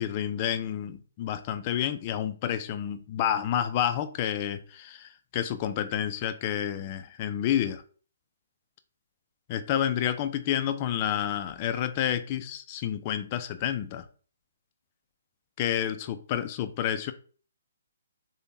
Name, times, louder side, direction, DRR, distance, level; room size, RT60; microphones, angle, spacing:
voice 1, 0.0-7.8 9.5-14.1 15.6-17.1, left 10 dB, 35° left, 0.3 m, -29 dB
3.3 x 2.1 x 2.6 m
hypercardioid pair, 140°, 0 cm